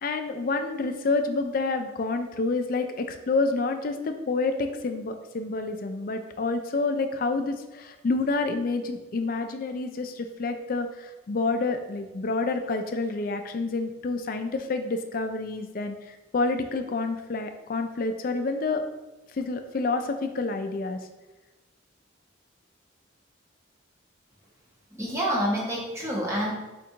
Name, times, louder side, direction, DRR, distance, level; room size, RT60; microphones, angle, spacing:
voice 1, 0.0-18.8 19.4-21.0, left 3 dB, 45° left, 6 dB, 0.4 m, -28 dB
voice 2, 24.9-26.5, equal, 15° right, -5 dB, 0.9 m, -27 dB
3.6 x 2.5 x 4.3 m, 1.1 s
head